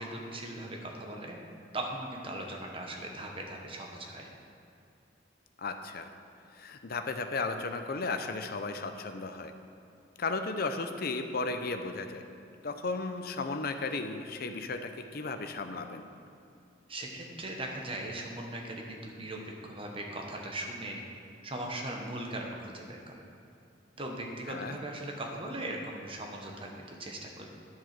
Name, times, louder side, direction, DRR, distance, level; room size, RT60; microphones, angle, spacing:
voice 1, 0.0-1.4 1.7-4.3 16.9-21.0 21.4-23.2 24.0-27.5, right 1 dB, 30° right, 1 dB, 1.3 m, -39 dB
voice 2, 5.6-6.1 6.5-9.5 10.2-12.2 12.6-16.1 24.5-24.8, left 3 dB, 55° left, 7 dB, 0.7 m, -35 dB
10.0 x 7.6 x 6.0 m, 2.6 s
head